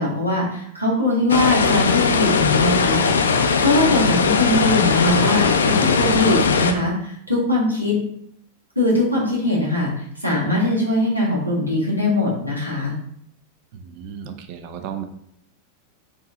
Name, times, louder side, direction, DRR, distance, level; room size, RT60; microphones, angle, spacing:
voice 1, 0.0-8.0 8.7-12.9, left 1 dB, 85° right, -5 dB, 1.6 m, -21 dB
sound 1, 1.3-6.7, left 5 dB, 70° left, 0.4 m, -19 dB
voice 2, 13.7-15.0, right 8 dB, 45° right, 7 dB, 0.5 m, -34 dB
4.6 x 2.9 x 3.7 m, 0.69 s
figure-of-eight pair, 90°, 0 cm